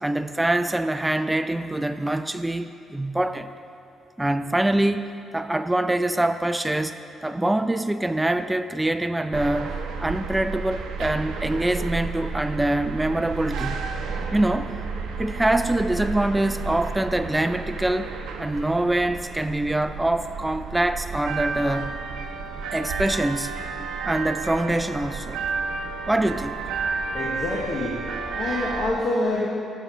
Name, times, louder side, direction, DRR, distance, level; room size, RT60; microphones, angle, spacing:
voice 1, 0.0-3.5 4.2-13.9 14.3-14.7 15.2-18.1 18.4-22.0 22.7-23.6 24.0-25.4 26.1-26.6, right 1 dB, 10° right, 10 dB, 0.3 m, -24 dB
sound 1, 9.3-28.9, right 4 dB, 85° right, 0.6 m, -32 dB
voice 2, 27.1-28.0 28.3-29.5, left 2 dB, 50° left, -4 dB, 1.1 m, -26 dB
7.0 x 5.6 x 5.5 m, 2.6 s
cardioid pair, 90°, 0 cm